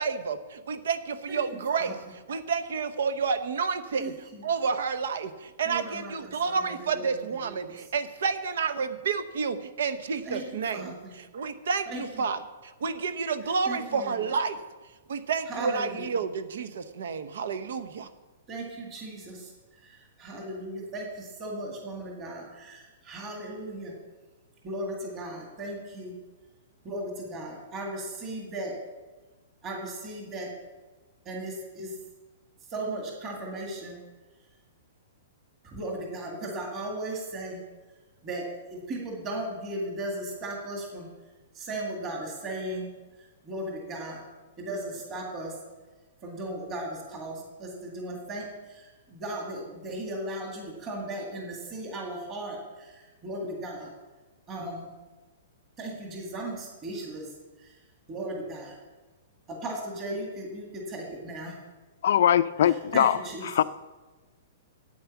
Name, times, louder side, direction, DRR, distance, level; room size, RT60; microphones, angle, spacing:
voice 1, 0.0-4.1 4.4-10.9 11.3-14.6 15.1-18.1, right 5 dB, 65° right, 11 dB, 0.9 m, -30 dB
voice 2, 4.0-4.4 5.7-7.8 10.2-11.1 11.9-12.3 13.7-14.3 15.5-16.2 18.5-19.5 19.8-23.9 24.6-26.1 26.8-28.8 29.6-30.5 31.3-31.9 32.7-34.0 35.6-37.6 38.2-41.1 41.5-42.9 43.2-44.2 44.6-45.5 46.2-53.9 54.5-54.9 55.8-57.3 57.6-57.8 58.1-58.8 59.5-61.5 62.6-63.6, right 1 dB, 20° right, -1 dB, 1.9 m, -37 dB
voice 3, 62.0-63.2 63.5-63.6, left 10 dB, 55° left, 14 dB, 0.5 m, -21 dB
9.5 x 8.8 x 7.1 m, 1.2 s
hypercardioid pair, 175°, 0 cm